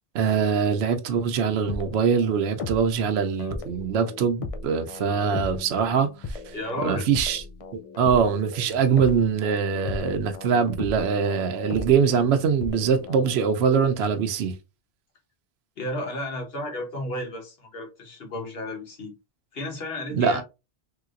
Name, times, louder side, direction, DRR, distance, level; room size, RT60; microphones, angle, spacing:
voice 1, 0.1-6.5 6.8-7.4 8.0-14.6 20.2-20.4, right 6 dB, 80° right, 0.8 m, -23 dB
sound 1, 1.7-3.0 3.4-13.4, left 3 dB, 55° left, 0.4 m, -37 dB
voice 2, 6.5-7.1 15.8-19.1 19.5-20.4, left 1 dB, 70° left, 1.2 m, -33 dB
3.3 x 2.9 x 2.4 m
omnidirectional pair, 1.1 m